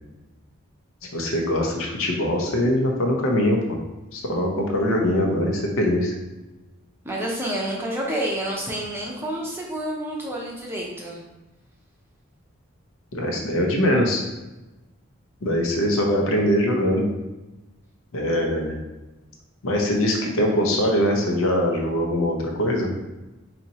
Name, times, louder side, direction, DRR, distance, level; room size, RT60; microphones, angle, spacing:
voice 1, 1.1-3.8 4.1-6.1 13.1-14.2 15.4-17.1 18.1-18.8 19.6-22.9, equal, 80° left, 1 dB, 0.7 m, -22 dB
voice 2, 7.0-11.2, right 1 dB, 10° right, -3 dB, 0.6 m, -29 dB
4.2 x 2.8 x 2.8 m, 1.1 s
head